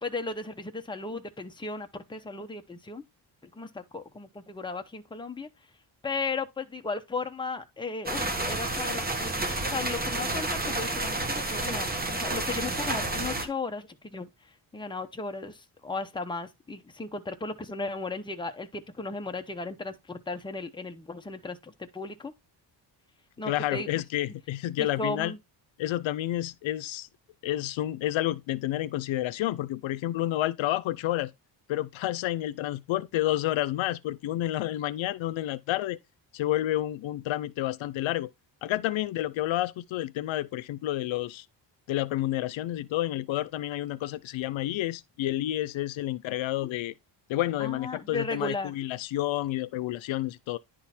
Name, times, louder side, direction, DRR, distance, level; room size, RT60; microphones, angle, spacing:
voice 1, 0.0-3.0 3.5-5.5 6.0-11.9 12.2-14.3 14.7-22.3 23.4-23.9 24.8-25.4 47.6-48.7, left 3 dB, 10° left, 0.9 m, -35 dB
sound 1, 8.1-13.5, right 2 dB, 20° right, 1.4 m, -30 dB
voice 2, 23.5-25.3 25.8-27.1 27.4-31.3 31.7-36.0 36.3-38.3 38.6-41.5 41.9-46.9 47.3-50.6, left 14 dB, 75° left, 0.6 m, -30 dB
10.5 x 3.8 x 4.3 m
cardioid pair, 135°, 47 cm